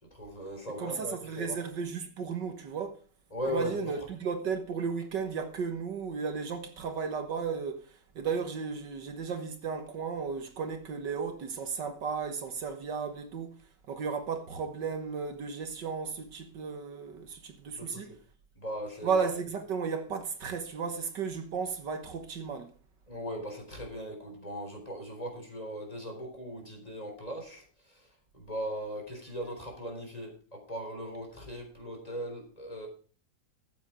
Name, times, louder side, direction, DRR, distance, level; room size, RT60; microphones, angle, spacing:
voice 1, 0.0-1.6 3.3-3.8 17.8-18.2 18.6-19.2 23.1-32.9, equal, 20° left, 3.9 m, -39 dB
voice 2, 0.8-3.0 3.5-7.8 8.2-13.5 13.9-18.1 19.0-22.7, right 5 dB, 70° right, 1.9 m, -34 dB
14.0 x 7.7 x 4.9 m
omnidirectional pair, 2.0 m